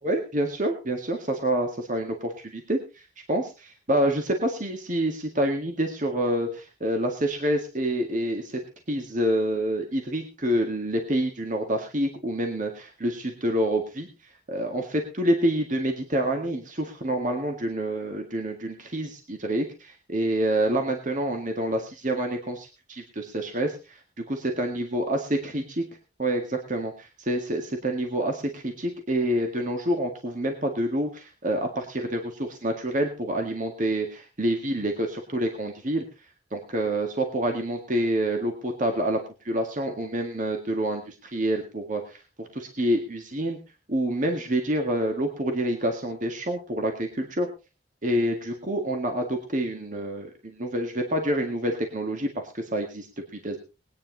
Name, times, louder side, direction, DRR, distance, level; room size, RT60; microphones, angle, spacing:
voice 1, 0.0-3.0 3.3-8.6 8.9-14.1 14.5-25.8 26.2-36.0 36.5-43.6 43.9-47.5 48.0-53.1 53.3-53.6, right 1 dB, 45° right, 3 dB, 1.9 m, -27 dB
21.0 x 9.6 x 3.9 m, 0.31 s
head